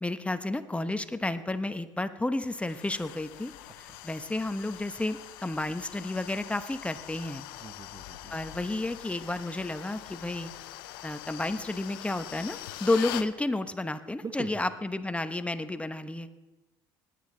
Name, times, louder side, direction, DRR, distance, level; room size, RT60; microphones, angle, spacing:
voice 1, 0.0-3.5 3.8-7.4 8.3-10.5 11.0-16.3, left 2 dB, 10° left, 10 dB, 0.9 m, -31 dB
sound 1, 2.4-13.3, left 15 dB, 85° left, 0.6 m, -43 dB
voice 2, 7.6-8.5 14.2-14.6, right 5 dB, 30° right, 9 dB, 1.1 m, -42 dB
20.0 x 9.5 x 3.9 m, 1.1 s
hypercardioid pair, 70°, 12 cm